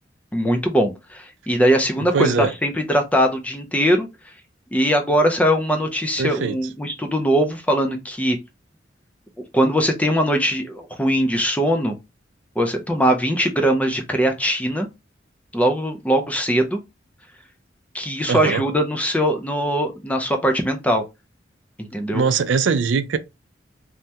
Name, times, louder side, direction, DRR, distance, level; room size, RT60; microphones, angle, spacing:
voice 1, 0.3-4.1 4.7-8.4 9.4-12.0 12.6-14.9 15.5-16.8 17.9-21.0 21.8-22.2, equal, 10° left, 0.4 m, -21 dB
voice 2, 2.1-2.5 6.2-6.6 18.3-18.6 22.1-23.2, right 5 dB, 85° right, 0.4 m, -21 dB
3.3 x 2.1 x 2.8 m
head